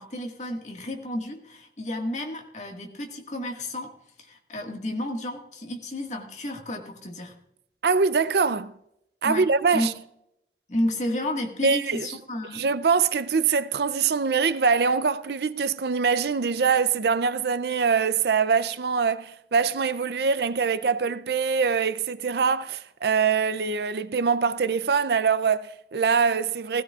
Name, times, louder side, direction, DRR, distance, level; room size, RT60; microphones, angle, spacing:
voice 1, 0.0-3.9 4.2-7.4 9.2-9.5 9.7-9.9 10.7-12.6, left 1 dB, 40° left, 1.7 m, -31 dB
voice 2, 7.8-8.7 9.2-9.9 11.6-12.1 12.5-26.8, right 5 dB, 65° right, 0.5 m, -23 dB
17.0 x 15.5 x 2.4 m
head